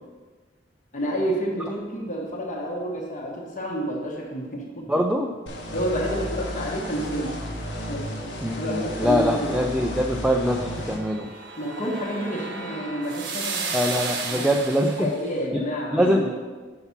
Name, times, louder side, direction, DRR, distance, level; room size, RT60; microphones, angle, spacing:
voice 1, 0.9-4.9 5.7-7.4 7.9-8.1 8.5-9.6 11.6-13.9 14.3-16.3, equal, 45° left, -2 dB, 1.1 m, -29 dB
voice 2, 4.9-5.3 8.4-11.3 13.7-15.1 15.9-16.3, equal, 5° right, 2 dB, 0.3 m, -23 dB
sound 1, 5.5-11.0, equal, 80° left, 1.2 m, -33 dB
sound 2, 10.6-15.2, right 4 dB, 65° right, 1.0 m, -33 dB
5.7 x 5.6 x 5.7 m, 1.4 s
head